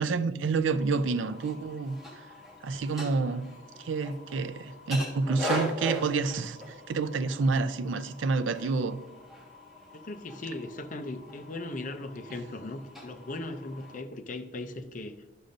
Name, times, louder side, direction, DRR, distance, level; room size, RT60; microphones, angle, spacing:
voice 1, 0.0-2.3 2.6-3.5 3.8-9.0, right 4 dB, 70° right, 13 dB, 0.4 m, -29 dB
sound 1, 0.7-14.0, left 1 dB, ahead, 1.4 m, -41 dB
voice 2, 9.9-15.2, left 2 dB, 40° left, 9 dB, 0.5 m, -38 dB
11.5 x 6.3 x 2.6 m, 1.1 s
head